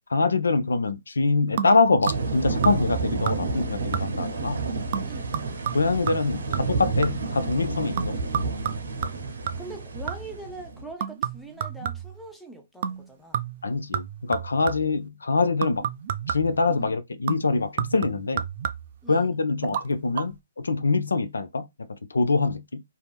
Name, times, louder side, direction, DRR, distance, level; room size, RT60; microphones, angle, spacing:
voice 1, 0.1-4.7 5.7-8.2 13.6-15.9 16.3-18.4 19.1-21.7 22.1-22.8, left 3 dB, 80° left, 0.4 m, -24 dB
sound 1, 1.6-2.4 2.6-3.0 3.3-3.6 3.9-4.4 4.9-7.4 8.0-10.4 11.0-12.3 12.8-13.1 13.3-15.0 15.6-16.6 17.3-19.0 19.6-19.9 20.1-20.2, right 9 dB, 45° right, 0.4 m, -31 dB
sound 2, 2.1-10.9, right 3 dB, 70° right, 0.9 m, -30 dB
voice 2, 5.0-5.4 9.6-13.4 16.7-17.0 19.0-19.3, right 2 dB, ahead, 0.6 m, -42 dB
2.8 x 2.0 x 3.3 m
figure-of-eight pair, 135°, 0 cm